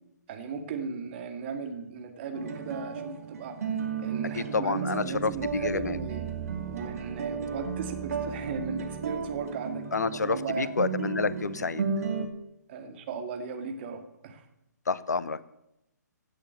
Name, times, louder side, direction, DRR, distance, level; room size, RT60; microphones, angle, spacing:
voice 1, 0.3-6.3 6.7-10.8 12.7-14.4, right 5 dB, 35° right, 5 dB, 2.2 m, -36 dB
sound 1, 2.3-12.3, right 6 dB, 55° right, 2.3 m, -34 dB
voice 2, 4.3-6.0 9.9-11.8 14.9-15.5, left 4 dB, 65° left, 17 dB, 0.9 m, -29 dB
sound 2, 5.1-9.5 10.0-10.1, right 6 dB, 20° right, 1.5 m, -43 dB
16.5 x 8.3 x 8.4 m, 0.85 s
figure-of-eight pair, 130°, 10 cm